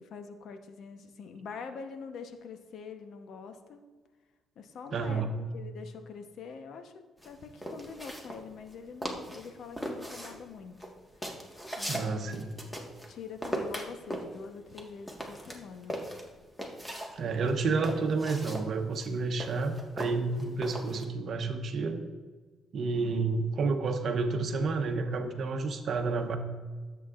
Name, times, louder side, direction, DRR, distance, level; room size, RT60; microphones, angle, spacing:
voice 1, 0.0-3.8 4.6-5.3 5.5-10.9 11.8-12.4 13.1-16.0 22.9-23.4, left 5 dB, 70° left, 7 dB, 0.9 m, -45 dB
voice 2, 4.9-5.3 11.9-12.5 17.1-22.0 22.7-26.4, right 4 dB, 60° right, 6 dB, 0.9 m, -30 dB
sound 1, 7.2-8.8 9.0-9.5 9.8-13.1 13.4-17.1 17.4-21.0, equal, 5° left, 1.5 m, -38 dB
13.5 x 8.0 x 2.5 m, 1.4 s
cardioid pair, 90°, 0 cm